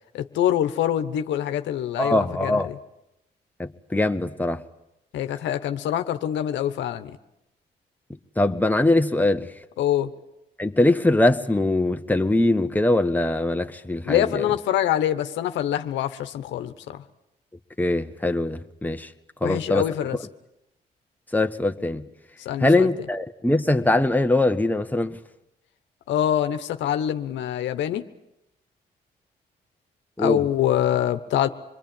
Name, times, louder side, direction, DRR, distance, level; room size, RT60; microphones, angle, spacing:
voice 1, 0.1-2.7 5.1-7.1 9.8-10.1 14.0-17.0 19.4-20.2 22.4-22.9 26.1-28.1 30.2-31.5, left 11 dB, 85° left, 1.2 m, -25 dB
voice 2, 2.0-2.7 3.6-4.6 8.4-9.5 10.6-14.5 17.8-19.1 19.4-19.8 21.3-22.0 22.6-25.2 30.2-30.4, left 2 dB, 10° left, 1.6 m, -22 dB
26.5 x 22.0 x 9.1 m
supercardioid pair, 60°, 18 cm